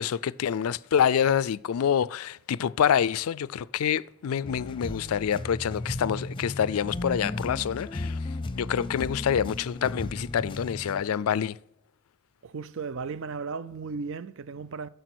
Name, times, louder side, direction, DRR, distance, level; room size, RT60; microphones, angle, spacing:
voice 1, 0.0-8.2 8.5-11.5, left 8 dB, 80° left, 0.4 m, -26 dB
sound 1, 4.4-11.0, left 2 dB, 25° left, 0.6 m, -35 dB
voice 2, 12.4-14.9, right 5 dB, 65° right, 0.5 m, -35 dB
11.0 x 6.7 x 6.1 m
head